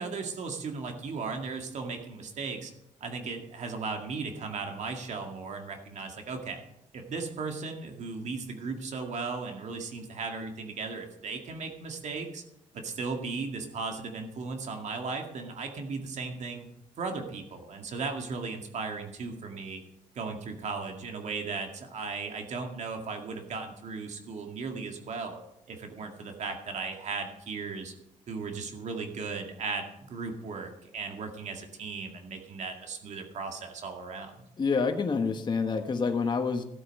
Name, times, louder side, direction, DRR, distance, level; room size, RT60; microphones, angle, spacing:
voice 1, 0.0-2.7 3.0-6.6 6.9-12.4 12.7-16.7 17.0-19.8 20.1-25.4 25.7-27.9 28.3-34.4, right 4 dB, 60° right, 4 dB, 2.0 m, -36 dB
voice 2, 34.6-36.6, left 5 dB, 35° left, 5 dB, 1.3 m, -27 dB
13.5 x 8.3 x 5.4 m, 0.82 s
cardioid pair, 105°, 13 cm